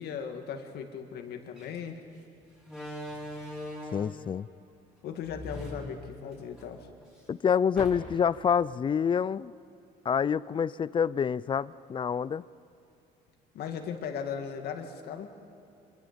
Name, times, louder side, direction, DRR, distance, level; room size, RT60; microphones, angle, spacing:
voice 1, 0.0-2.0 5.0-6.9 13.5-15.3, left 7 dB, 70° left, 5 dB, 2.1 m, -37 dB
Slam, 1.6-1.8 2.6-4.2 5.2-6.6 7.0-7.1 7.7-8.4, left 1 dB, 5° right, 5.4 m, -41 dB
voice 2, 3.9-4.5 7.3-9.5 10.0-12.4, left 7 dB, 30° left, 20 dB, 0.4 m, -27 dB
26.0 x 23.0 x 5.3 m, 2.7 s
cardioid pair, 110°, 17 cm